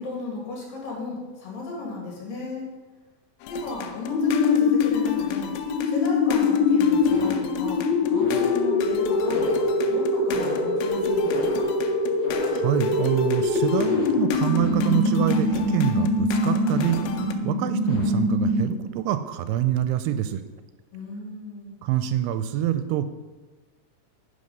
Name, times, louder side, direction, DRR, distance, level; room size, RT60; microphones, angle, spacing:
voice 1, 0.0-2.7 3.4-5.5 5.9-9.5 9.9-11.7 20.9-21.7, left 3 dB, 60° left, -2 dB, 3.5 m, -35 dB
sound 1, 3.4-17.3, left 9 dB, 80° left, 2.4 m, -37 dB
sound 2, 4.0-18.9, left 3 dB, 40° left, 2.4 m, -23 dB
voice 2, 12.5-20.4 21.8-23.1, right 11 dB, 85° right, 11 dB, 2.5 m, -26 dB
10.0 x 5.4 x 5.3 m, 1.3 s
omnidirectional pair, 4.7 m